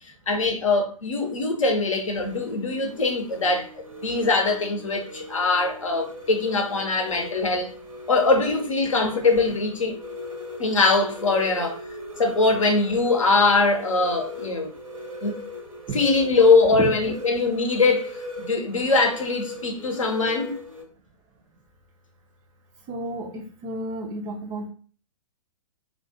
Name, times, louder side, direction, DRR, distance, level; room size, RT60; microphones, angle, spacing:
voice 1, 0.3-3.7 4.0-7.7 8.1-10.0 10.6-11.8 12.2-14.7 15.2-15.3 15.9-18.1 18.4-20.6, left 3 dB, 70° left, 0.7 m, -22 dB
sound 1, 1.1-20.8, equal, 75° right, 0.8 m, -39 dB
voice 2, 22.9-23.3 23.6-24.7, right 2 dB, 20° right, 0.4 m, -31 dB
2.2 x 2.2 x 2.5 m
figure-of-eight pair, 110°, 17 cm